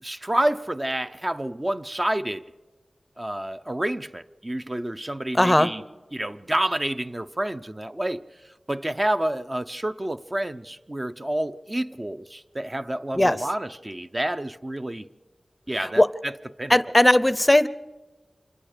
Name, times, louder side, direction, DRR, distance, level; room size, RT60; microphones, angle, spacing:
voice 1, 0.0-2.4 3.2-5.8 6.1-8.2 8.7-15.1 15.7-16.3 16.6-16.8, right 1 dB, 30° right, 0.6 m, -28 dB
voice 2, 5.3-5.7 13.1-13.5 15.8-16.1 16.7-17.7, left 1 dB, 15° left, 0.6 m, -18 dB
26.5 x 22.5 x 5.1 m
wide cardioid pair, 65°, 0 cm